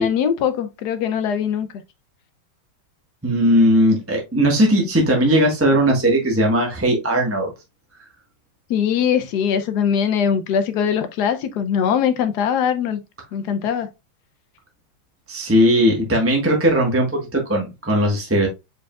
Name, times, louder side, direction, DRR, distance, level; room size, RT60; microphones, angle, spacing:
voice 1, 0.0-1.7 4.7-4.9 8.7-13.0 13.3-13.9, left 8 dB, 65° left, 1.1 m, -21 dB
voice 2, 3.2-7.5 15.3-18.5, equal, 10° right, 0.9 m, -18 dB
4.8 x 4.7 x 2.3 m
omnidirectional pair, 2.1 m